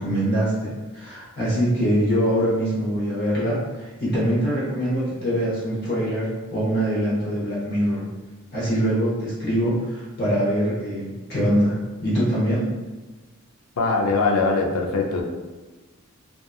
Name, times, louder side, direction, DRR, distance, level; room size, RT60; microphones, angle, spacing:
voice 1, 0.0-8.1 8.5-12.7, equal, 50° left, -7 dB, 0.8 m, -23 dB
voice 2, 13.8-15.2, left 3 dB, 85° left, 1 dB, 0.4 m, -21 dB
2.7 x 2.3 x 2.3 m, 1.2 s
head